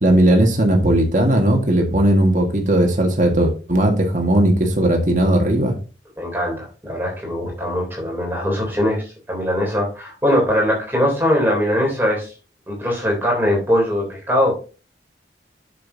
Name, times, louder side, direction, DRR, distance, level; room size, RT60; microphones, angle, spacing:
voice 1, 0.0-5.7, right 1 dB, 45° right, 2 dB, 1.8 m, -17 dB
voice 2, 6.2-12.3 12.7-14.5, equal, 10° right, -2 dB, 3.4 m, -21 dB
8.8 x 7.0 x 2.8 m, 0.34 s
head